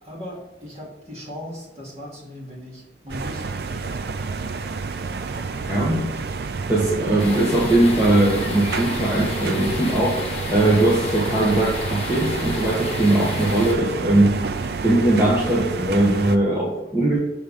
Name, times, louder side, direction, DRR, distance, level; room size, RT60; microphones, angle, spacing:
voice 1, 0.0-4.5 5.5-5.9, left 1 dB, 35° right, -5 dB, 2.3 m, -39 dB
sound 1, 3.1-16.4, right 4 dB, 60° right, 0.4 m, -29 dB
voice 2, 5.7-6.0 6.7-10.2 10.5-14.4 14.8-17.2, right 1 dB, 15° right, -7 dB, 1.1 m, -20 dB
sound 2, 7.2-13.7, left 2 dB, 35° left, 1.1 m, -33 dB
6.5 x 3.5 x 5.4 m, 1.0 s
head